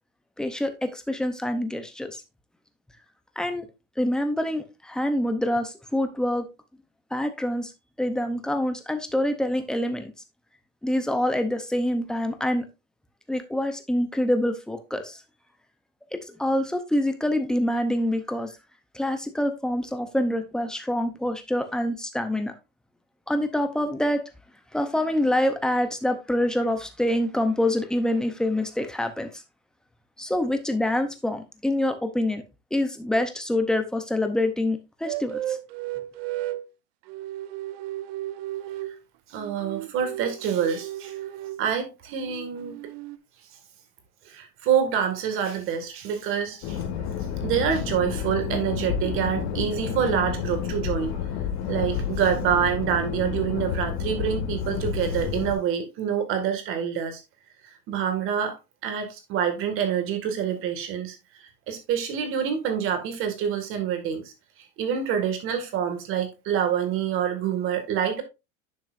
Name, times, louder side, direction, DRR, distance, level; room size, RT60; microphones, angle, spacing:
voice 1, 0.4-2.2 3.4-3.7 4.0-6.4 7.1-7.7 8.0-10.1 10.8-12.7 13.3-15.2 16.1-18.5 18.9-22.5 23.3-24.2 24.7-29.4 30.2-32.4 32.7-35.6, left 1 dB, ahead, 0.6 m, -26 dB
sound 1, 35.0-36.7 37.1-39.0 39.3-41.7 42.1-43.2, right 14 dB, 55° right, 0.8 m, -34 dB
voice 2, 39.3-41.1 41.6-42.8 44.3-46.8 47.4-51.3 51.7-57.2 57.9-58.5 58.8-61.1 61.7-64.3 64.8-68.2, right 8 dB, 35° right, 1.9 m, -26 dB
sound 2, 46.6-55.5, left 8 dB, 50° left, 1.8 m, -30 dB
10.5 x 6.0 x 2.5 m
supercardioid pair, 165°, 37 cm